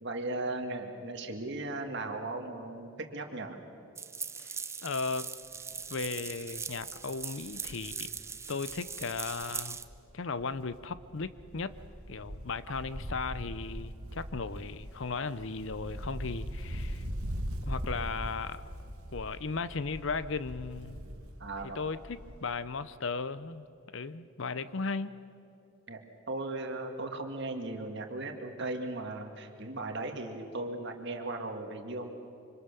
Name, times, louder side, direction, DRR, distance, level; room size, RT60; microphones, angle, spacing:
voice 1, 0.0-3.6 12.7-12.8 21.4-21.8 25.9-26.0 26.3-32.1, right 2 dB, 50° right, 4 dB, 2.1 m, -37 dB
sound 1, 4.0-9.8, right 6 dB, 10° right, 0.5 m, -40 dB
voice 2, 4.4-5.3 5.9-8.1 8.5-9.8 10.1-11.8 12.1-17.0 17.6-18.6 19.1-21.1 21.7-23.7 23.9-25.2, left 4 dB, 60° left, 15 dB, 0.7 m, -36 dB
Wind, 5.5-5.8 6.2-6.3 6.6-10.1 10.4-22.6 22.8-22.9, equal, 85° right, 2.1 m, -41 dB
25.5 x 25.0 x 6.9 m, 2.8 s
head